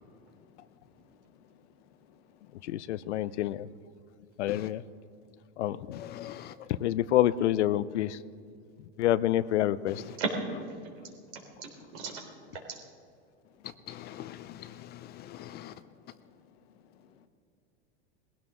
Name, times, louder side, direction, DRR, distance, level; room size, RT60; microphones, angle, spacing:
voice 1, 0.1-0.7 1.4-1.6 2.1-2.2 15.1-15.2 15.6-16.2 16.5-16.6 17.0-17.3, left 8 dB, 65° left, 1.3 m, -61 dB
voice 2, 2.7-3.7 4.4-4.8 5.6-6.4 6.7-8.2 9.0-10.0, left 13 dB, 90° left, 0.6 m, -28 dB
voice 3, 5.9-6.6 9.9-10.2 13.6-15.8, left 12 dB, 30° left, 0.5 m, -44 dB
voice 4, 10.1-10.9 11.3-12.8, right 3 dB, 70° right, 4.0 m, -36 dB
20.0 x 16.5 x 3.8 m
supercardioid pair, 130°, 34 cm